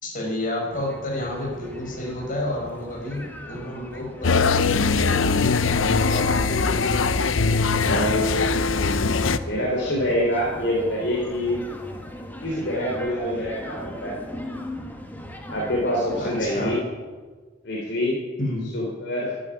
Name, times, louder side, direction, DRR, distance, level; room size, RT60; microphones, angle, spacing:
voice 1, 0.0-5.7 6.1-6.7 16.2-16.7 18.4-18.7, left 1 dB, 45° left, -2 dB, 5.5 m, -30 dB
sound 1, 0.7-16.8, left 1 dB, 10° left, 1.7 m, -39 dB
sound 2, 4.2-9.4, left 4 dB, 85° left, 0.7 m, -21 dB
voice 2, 6.6-6.9 7.8-8.8 9.4-11.6 12.4-14.1 15.5-16.8 17.6-18.2 18.7-19.3, equal, 60° left, -3 dB, 3.4 m, -26 dB
12.0 x 12.0 x 9.6 m, 1.4 s
head